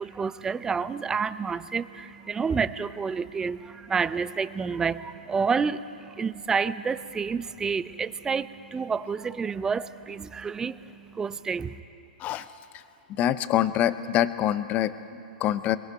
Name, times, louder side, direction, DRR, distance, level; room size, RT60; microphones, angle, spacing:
voice 1, 0.0-11.8, right 5 dB, 10° right, 16 dB, 0.4 m, -29 dB
voice 2, 13.1-15.8, left 11 dB, 30° left, 14 dB, 0.6 m, -25 dB
22.5 x 22.0 x 5.3 m, 2.7 s
hypercardioid pair, 125°, 5 cm